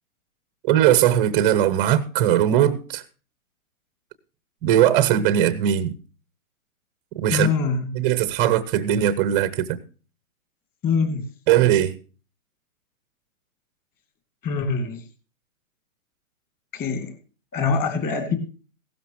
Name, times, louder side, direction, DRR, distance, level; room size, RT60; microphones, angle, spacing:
voice 1, 0.7-3.0 4.6-5.9 7.2-7.5 8.0-9.8 11.5-11.9, right 11 dB, 10° right, 0.7 m, -19 dB
voice 2, 7.3-7.9 10.8-11.2 14.4-15.0 16.7-17.1 17.5-18.4, left 5 dB, 20° left, 2.4 m, -24 dB
16.5 x 13.0 x 3.0 m
hypercardioid pair, 150°, 43 cm